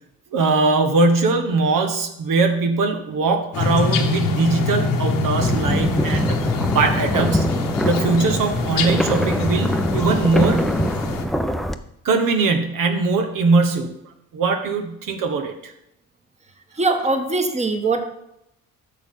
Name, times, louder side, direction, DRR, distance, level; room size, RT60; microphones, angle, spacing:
voice 1, 0.3-7.5 7.9-10.7 12.0-14.0 14.3-15.7, right 3 dB, 70° right, 5 dB, 1.2 m, -21 dB
sound 1, 3.5-11.2, left 3 dB, 85° left, 1.2 m, -24 dB
sound 2, 5.4-11.7, equal, ahead, 0.6 m, -24 dB
voice 2, 16.8-18.0, right 3 dB, 20° right, 5 dB, 1.3 m, -21 dB
11.0 x 6.7 x 3.7 m, 0.82 s
cardioid pair, 75°, 34 cm